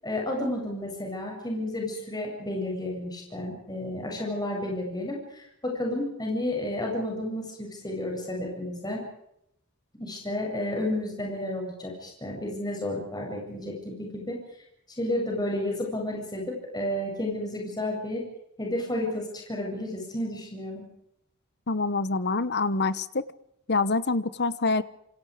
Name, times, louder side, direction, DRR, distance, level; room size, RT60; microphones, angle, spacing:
voice 1, 0.0-9.0 10.0-14.4 15.0-18.2 18.6-20.8, left 1 dB, 20° left, 0 dB, 7.9 m, -31 dB
voice 2, 21.7-23.2 23.7-24.8, left 3 dB, 50° left, 15 dB, 1.1 m, -26 dB
27.5 x 26.0 x 5.0 m, 0.76 s
head